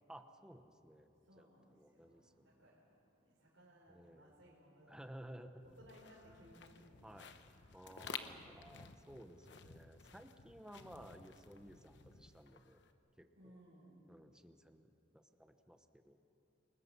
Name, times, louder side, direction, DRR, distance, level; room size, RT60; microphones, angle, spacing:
voice 1, 0.1-1.1 1.4-2.7 3.9-4.4 4.9-5.7 7.0-7.3 7.7-12.8 13.2-13.6 14.1-14.9 15.1-16.2, equal, 5° right, 7 dB, 1.0 m, -56 dB
voice 2, 1.3-5.2 5.6-7.0 7.9-8.3 13.4-14.3, equal, 80° right, -5 dB, 4.4 m, -63 dB
sound 1, 5.6-12.9, left 6 dB, 65° left, 1.1 m, -53 dB
28.5 x 21.0 x 5.6 m, 2.8 s
head